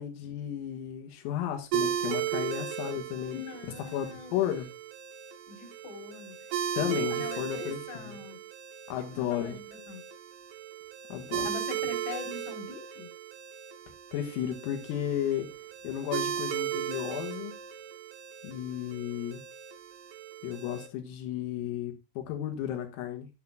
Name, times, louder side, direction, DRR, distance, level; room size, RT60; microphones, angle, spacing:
voice 1, 0.0-4.7 6.8-7.8 8.0-8.2 8.9-9.6 11.1-11.5 14.1-15.5 15.8-17.6 18.4-19.4 20.4-23.3, left 11 dB, 85° left, 4.3 m, -33 dB
sound 1, 1.7-20.9, right 9 dB, 75° right, 4.1 m, -36 dB
voice 2, 3.2-4.5 5.5-6.4 6.7-8.4 9.1-10.0 11.4-13.1, left 5 dB, 70° left, 6.4 m, -43 dB
13.5 x 10.5 x 2.3 m
omnidirectional pair, 5.9 m